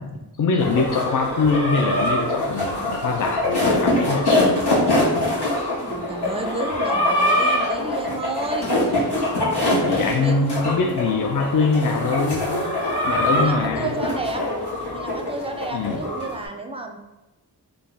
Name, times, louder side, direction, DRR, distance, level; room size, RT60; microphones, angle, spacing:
voice 1, 0.0-4.3 9.9-12.8 13.0-14.0 15.7-16.0, left 4 dB, 55° left, 3 dB, 0.5 m, -23 dB
sound 1, 0.6-16.4, left 1 dB, 80° left, 1.1 m, -23 dB
voice 2, 5.8-8.7 10.2-11.0 13.1-14.4 14.9-17.0, right 2 dB, 15° right, 4 dB, 0.4 m, -31 dB
3.3 x 2.3 x 3.9 m, 1.0 s
cardioid pair, 50°, 39 cm